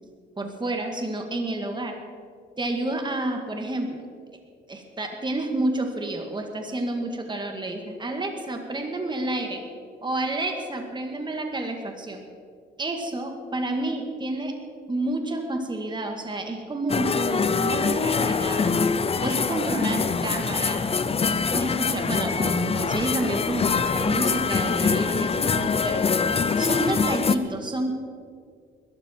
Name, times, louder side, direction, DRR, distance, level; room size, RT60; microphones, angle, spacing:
voice 1, 0.4-2.0 2.6-4.1 4.7-9.6 10.0-12.2 12.8-14.5 14.9-18.8 19.2-20.9 21.5-26.0 26.6-27.9, right 2 dB, 25° right, 4 dB, 1.9 m, -29 dB
sound 1, 16.9-27.4, left 5 dB, 30° left, 0.7 m, -24 dB
20.5 x 12.5 x 4.5 m, 2.2 s
cardioid pair, 90°, 20 cm